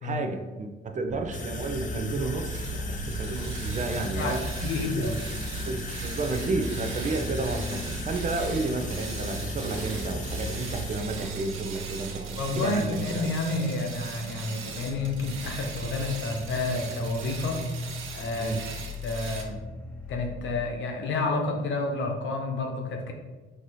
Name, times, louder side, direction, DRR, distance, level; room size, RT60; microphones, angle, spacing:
voice 1, 0.0-5.1 5.6-13.3 18.4-18.6, right 3 dB, 40° right, 5 dB, 0.5 m, -32 dB
sound 1, 1.1-20.6, equal, 5° left, 0.6 m, -39 dB
sound 2, 1.3-11.0, left 1 dB, 40° left, 0.7 m, -36 dB
sound 3, 2.5-19.4, right 5 dB, 85° right, 0.7 m, -41 dB
voice 2, 3.9-5.2 12.4-17.6 18.1-18.6 19.0-19.6 20.1-23.1, left 3 dB, 70° left, 2 dB, 0.9 m, -30 dB
4.6 x 2.7 x 4.0 m, 1.2 s
cardioid pair, 90°, 20 cm